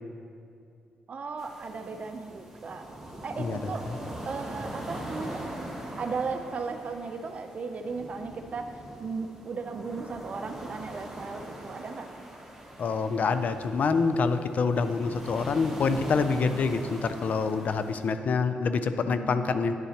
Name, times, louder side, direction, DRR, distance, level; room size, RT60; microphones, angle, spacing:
voice 1, 1.1-2.8 3.2-3.8 4.3-5.4 6.0-12.1 19.0-19.8, right 4 dB, 45° right, 6 dB, 0.6 m, -36 dB
sound 1, 1.4-18.1, right 1 dB, 5° right, 1.2 m, -42 dB
voice 2, 12.8-19.7, left 4 dB, 55° left, 10 dB, 0.4 m, -26 dB
10.5 x 7.0 x 2.9 m, 2.5 s
cardioid pair, 100°, 3 cm